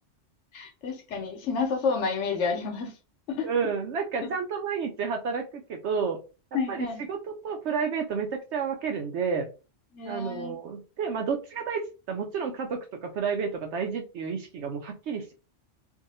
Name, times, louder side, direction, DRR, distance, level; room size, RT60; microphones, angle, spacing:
voice 1, 0.5-2.9 3.3-3.5 4.2-4.3 6.5-7.1 9.9-10.6, left 5 dB, 75° left, 5 dB, 1.0 m, -30 dB
voice 2, 3.4-6.2 6.7-9.5 10.0-15.3, right 6 dB, 70° right, 3 dB, 0.9 m, -31 dB
2.6 x 2.5 x 4.0 m, 0.31 s
omnidirectional pair, 1.3 m